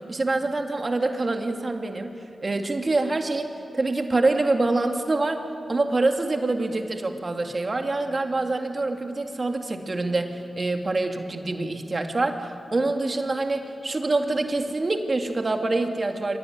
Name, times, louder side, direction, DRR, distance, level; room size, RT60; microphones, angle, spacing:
voice 1, 0.1-2.2 2.4-5.4 5.7-16.4, right 2 dB, 45° right, 5 dB, 2.3 m, -25 dB
23.5 x 16.0 x 9.6 m, 2.7 s
cardioid pair, 40°, 0 cm